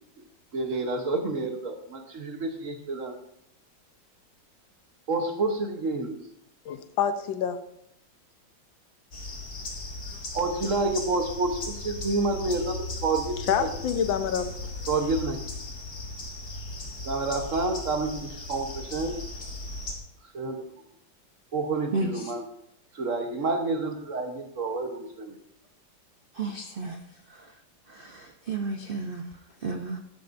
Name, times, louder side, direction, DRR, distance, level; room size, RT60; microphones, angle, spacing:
voice 1, 0.5-3.1 5.1-6.2 10.3-13.7 14.9-15.4 17.0-19.2 20.3-20.6 21.5-22.4 22.9-25.3, right 3 dB, 50° right, 5 dB, 1.2 m, -29 dB
voice 2, 6.6-7.6 13.5-14.7, left 8 dB, 90° left, 9 dB, 1.6 m, -27 dB
sound 1, 9.1-19.9, left 2 dB, 55° left, 2.5 m, -37 dB
voice 3, 21.9-22.4 26.3-27.6 27.9-30.0, right 3 dB, 75° right, 4 dB, 0.5 m, -33 dB
13.0 x 11.0 x 2.6 m, 0.76 s
omnidirectional pair, 2.0 m